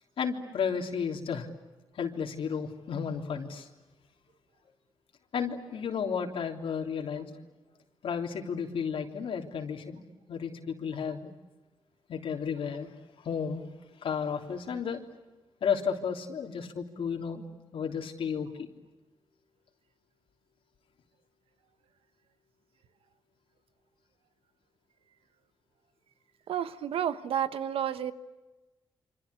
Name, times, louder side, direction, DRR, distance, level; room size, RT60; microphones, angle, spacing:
voice 1, 0.2-1.5 1.9-3.7 5.3-7.3 8.0-11.3 12.1-12.9 13.2-13.6 13.9-15.0 15.6-17.4 17.7-18.7, left 6 dB, 75° left, 3 dB, 3.3 m, -33 dB
voice 2, 26.5-28.1, right 9 dB, 85° right, 12 dB, 1.3 m, -31 dB
27.5 x 26.0 x 8.3 m, 1.2 s
cardioid pair, 95°, 9 cm